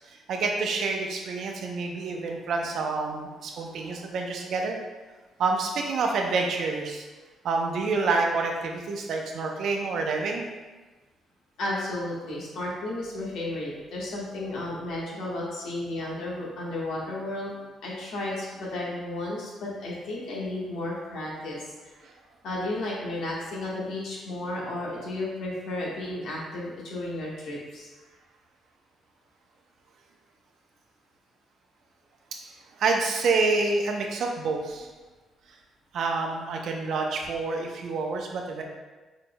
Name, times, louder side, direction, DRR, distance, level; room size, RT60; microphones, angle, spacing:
voice 1, 0.3-4.8 5.4-7.0 7.4-10.5 32.8-34.9 35.9-38.6, right 3 dB, 70° right, 2 dB, 0.7 m, -27 dB
voice 2, 11.6-17.5 17.8-21.7 22.4-27.9, left 1 dB, 80° left, -4 dB, 1.4 m, -33 dB
4.8 x 4.3 x 2.2 m, 1.2 s
cardioid pair, 90°, 0 cm